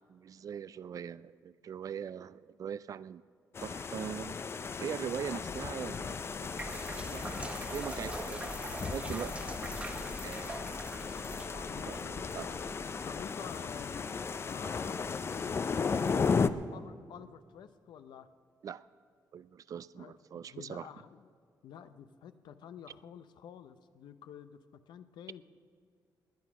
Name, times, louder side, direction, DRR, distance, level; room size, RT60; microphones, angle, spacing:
voice 1, 0.1-3.2 3.6-4.4 4.8-6.6 7.1-9.3 10.2-10.7 11.9-12.5 18.6-18.9 19.3-20.9, right 8 dB, 50° right, 17 dB, 0.3 m, -41 dB
sound 1, 3.5-16.5, left 5 dB, 35° left, 0.5 m, -35 dB
voice 2, 5.3-5.7 11.2-12.7 13.0-14.2 14.5-16.3 16.7-18.3 20.0-21.3 21.6-25.4, left 8 dB, 80° left, 11 dB, 0.6 m, -50 dB
sound 2, 6.4-13.2, right 2 dB, 15° right, 1.2 m, -44 dB
20.0 x 9.6 x 6.0 m, 2.1 s
cardioid pair, 120°, 7 cm